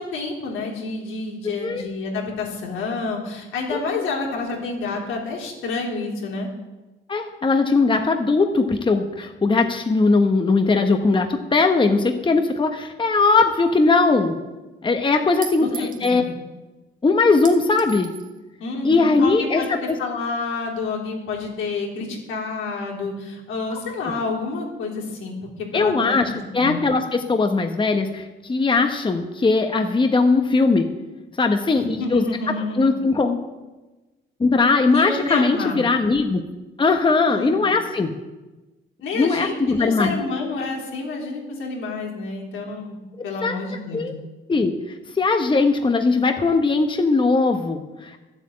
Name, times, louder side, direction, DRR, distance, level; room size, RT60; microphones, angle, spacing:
voice 1, 0.0-6.5 15.6-16.3 18.6-19.7 20.0-25.4 25.7-26.8 31.7-32.9 34.9-35.8 37.3-37.7 39.0-43.0 43.2-44.1, left 3 dB, 85° left, -1 dB, 3.5 m, -29 dB
voice 2, 3.7-4.0 7.1-14.4 14.8-16.2 17.0-18.1 18.8-20.0 24.0-24.1 25.7-30.9 31.4-32.2 32.7-33.5 34.4-36.4 36.8-38.1 39.1-40.1 43.4-43.6 43.9-48.2, left 3 dB, 25° left, 5 dB, 1.1 m, -20 dB
Chink clink, 13.7-13.8 15.4-16.2 17.4-18.3, right 7 dB, 40° right, 2.0 m, -37 dB
12.0 x 8.1 x 8.6 m, 1.1 s
cardioid pair, 90°, 20 cm